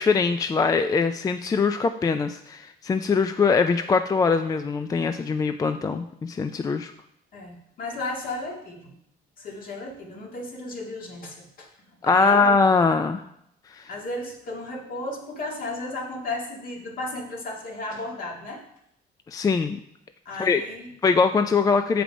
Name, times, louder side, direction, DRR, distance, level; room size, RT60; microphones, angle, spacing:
voice 1, 0.0-6.9 12.0-13.2 13.7-13.9 19.3-19.8 20.4-20.6 21.0-22.0, left 4 dB, 20° left, 9 dB, 0.3 m, -22 dB
voice 2, 7.3-8.9 9.4-11.7 12.0-12.5 13.9-18.6 20.3-20.9, left 2 dB, 55° left, 0 dB, 2.0 m, -34 dB
7.4 x 5.1 x 5.1 m, 0.77 s
cardioid pair, 110°, 17 cm